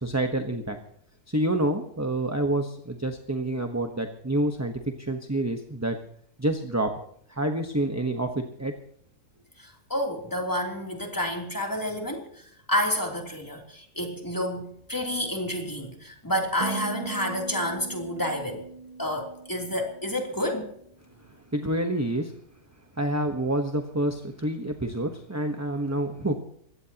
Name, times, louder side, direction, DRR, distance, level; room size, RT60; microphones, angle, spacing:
voice 1, 0.0-0.8 1.3-6.0 6.4-6.9 7.3-8.7 21.5-22.3 23.0-26.4, right 1 dB, 10° right, 5 dB, 1.0 m, -28 dB
voice 2, 9.6-18.6 19.0-20.7, left 1 dB, 10° left, 1 dB, 3.2 m, -29 dB
sound 1, 16.6-20.9, right 4 dB, 40° right, 0.5 m, -39 dB
22.0 x 16.5 x 2.9 m, 0.66 s
omnidirectional pair, 1.6 m